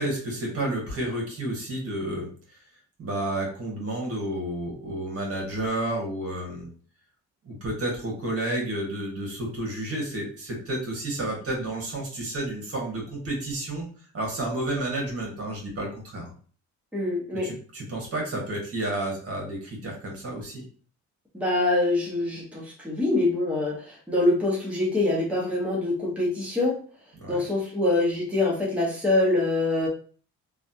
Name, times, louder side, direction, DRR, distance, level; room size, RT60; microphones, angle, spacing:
voice 1, 0.0-2.3 3.0-6.7 7.4-13.9 14.1-16.3 17.4-20.6 27.2-27.4, right 1 dB, 50° right, -1 dB, 1.5 m, -31 dB
voice 2, 16.9-17.5 21.3-26.8 27.3-29.9, left 2 dB, 5° right, -5 dB, 1.1 m, -25 dB
3.1 x 2.4 x 2.7 m, 0.42 s
cardioid pair, 90°, 30 cm